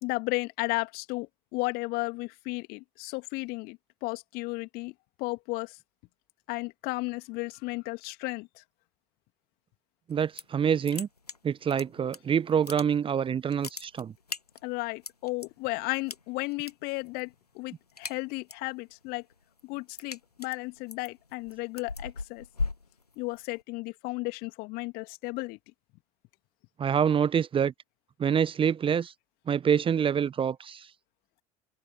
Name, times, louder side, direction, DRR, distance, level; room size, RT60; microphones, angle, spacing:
voice 1, 0.0-5.8 6.5-8.6 14.6-19.2 19.6-22.5 23.2-25.6, left 24 dB, 55° left, 2.7 m, -34 dB
sound 1, 10.1-10.6 10.8-12.2 12.5-13.2 13.5-15.5 16.1-16.7 17.0-17.3 17.6-18.7 19.1-23.6, left 3 dB, 85° left, 1.4 m, -38 dB
voice 2, 10.1-11.1 11.4-14.1 26.8-27.7 28.2-29.1 29.5-30.8, right 8 dB, 25° right, 1.1 m, -26 dB
open air
figure-of-eight pair, 65°, 19 cm